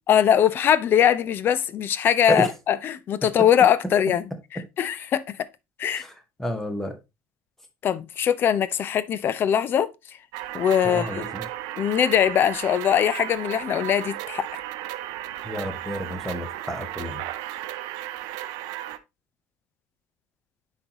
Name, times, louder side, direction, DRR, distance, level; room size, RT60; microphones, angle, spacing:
voice 1, 0.1-4.3 4.8-5.4 5.8-6.0 7.8-9.9 10.5-11.3 11.8-14.5, left 9 dB, 30° left, 0.4 m, -21 dB
voice 2, 6.4-7.0 10.8-11.5 15.4-17.2, equal, 5° left, 0.9 m, -30 dB
sound 1, 10.3-19.0, right 14 dB, 80° right, 0.5 m, -35 dB
9.8 x 4.0 x 2.8 m
cardioid pair, 180°, 7 cm